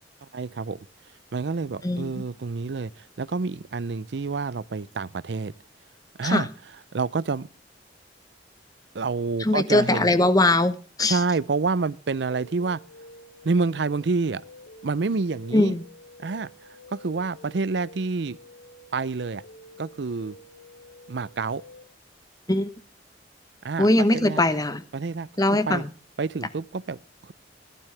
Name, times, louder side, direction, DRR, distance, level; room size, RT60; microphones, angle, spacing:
voice 1, 0.3-0.8 1.3-5.5 6.2-6.5 6.9-7.5 8.9-10.1 11.0-12.8 13.4-14.4 14.8-15.8 16.2-16.5 16.9-18.4 18.9-19.4 19.8-20.4 21.1-21.6 23.6-24.4 24.9-25.3 25.7-25.8 26.2-27.0 27.2-27.3, right 4 dB, 65° right, 0.5 m, -28 dB
voice 2, 9.4-11.2 15.5-15.8 22.5-22.7 23.8-24.8 25.4-25.9, left 2 dB, 20° left, 1.0 m, -21 dB
sound 1, 12.3-21.8, left 1 dB, 75° left, 1.9 m, -49 dB
15.5 x 12.0 x 3.3 m
head